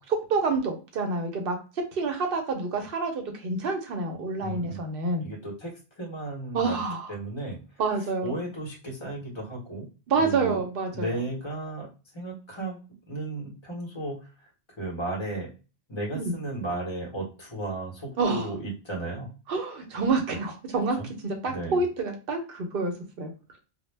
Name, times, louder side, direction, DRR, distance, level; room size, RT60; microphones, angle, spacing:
voice 1, 0.3-1.6 1.9-5.3 6.5-7.1 7.8-8.3 10.1-11.1 16.1-16.2 18.2-18.5 19.5-21.0 21.2-22.9 23.2-23.3, right 4 dB, 65° right, 4 dB, 0.8 m, -28 dB
voice 2, 4.4-4.8 5.2-6.8 7.1-9.9 10.2-10.6 10.9-11.9 12.1-12.8 13.1-15.5 15.9-19.3 21.0-21.1 21.4-21.8, right 2 dB, 30° left, -2 dB, 0.8 m, -34 dB
2.1 x 2.0 x 3.1 m, 0.33 s
omnidirectional pair, 1.1 m